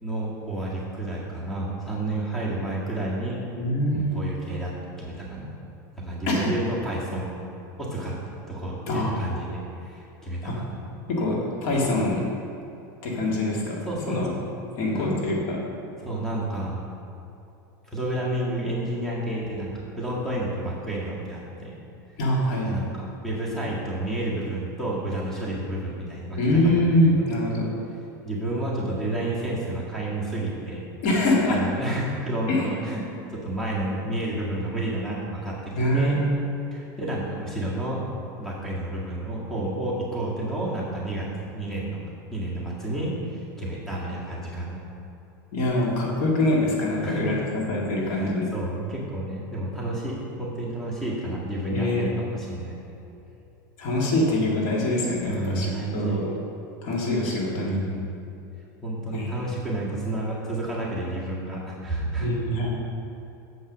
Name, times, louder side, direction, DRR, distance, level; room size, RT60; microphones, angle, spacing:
voice 1, 0.0-3.4 3.9-5.5 6.0-7.3 7.8-10.8 13.9-14.5 14.9-15.1 16.0-16.8 17.8-21.7 22.6-26.8 27.2-27.3 28.2-30.8 31.5-33.0 33.3-36.2 36.7-38.1 38.4-42.0 42.3-44.8 46.9-47.3 48.0-52.8 55.3-56.2 57.6-58.1 58.8-62.3, right 1 dB, 5° left, -6 dB, 1.8 m, -30 dB
voice 2, 3.5-4.2 6.3-6.5 8.9-9.3 10.4-10.6 11.1-12.2 13.0-13.8 14.1-14.3 14.8-15.6 22.2-22.7 26.4-27.7 31.0-31.6 32.5-32.7 35.8-36.2 45.5-47.4 47.7-48.4 51.7-52.1 53.8-56.3 56.8-57.8 59.1-59.3 62.2-62.7, left 1 dB, 60° left, -3 dB, 2.0 m, -24 dB
7.8 x 5.5 x 6.2 m, 2.8 s
supercardioid pair, 130°, 11 cm